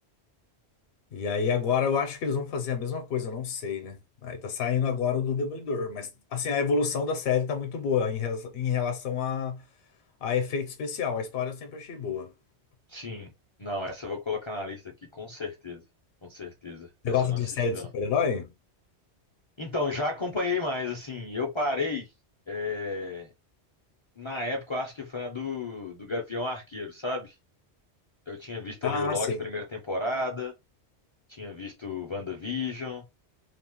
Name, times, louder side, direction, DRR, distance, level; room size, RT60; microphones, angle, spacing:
voice 1, 1.1-9.6 10.2-12.3 17.0-18.5 28.8-29.4, left 6 dB, 70° left, 0.8 m, -28 dB
voice 2, 12.9-13.3 13.6-15.8 16.2-16.9 17.2-17.9 19.6-22.1 22.5-23.3 24.2-27.3 28.3-30.5 31.3-33.1, left 3 dB, 45° left, 0.3 m, -33 dB
2.9 x 2.0 x 2.9 m
omnidirectional pair, 1.1 m